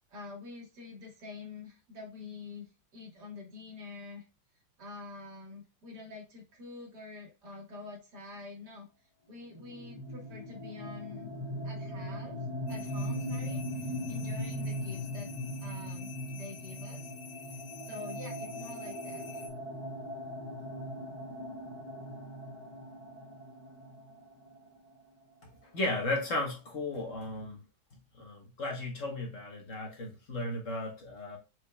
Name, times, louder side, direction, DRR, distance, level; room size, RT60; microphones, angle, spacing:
voice 1, 0.1-4.2 4.8-8.9 9.3-11.3 11.6-15.3 15.6-17.1 17.5-19.4, left 3 dB, 55° right, 2.1 m, -47 dB
sound 1, 9.6-25.2, equal, 15° left, 2.1 m, -39 dB
sound 2, 12.7-19.5, left 9 dB, 75° left, 1.3 m, -50 dB
voice 2, 25.7-27.6 28.2-31.4, left 2 dB, 45° left, 1.2 m, -35 dB
4.6 x 4.3 x 2.2 m
omnidirectional pair, 2.2 m